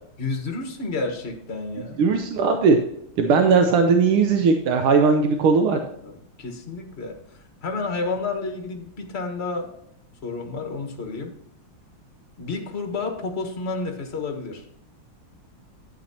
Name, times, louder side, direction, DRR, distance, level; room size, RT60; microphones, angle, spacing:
voice 1, 0.2-2.0 5.7-7.2 7.6-9.7 10.2-11.3 12.4-14.6, left 3 dB, 35° left, 4 dB, 1.5 m, -30 dB
voice 2, 2.0-2.8 3.2-5.8, right 5 dB, 85° right, 5 dB, 1.7 m, -18 dB
11.5 x 8.6 x 2.9 m, 0.73 s
omnidirectional pair, 2.3 m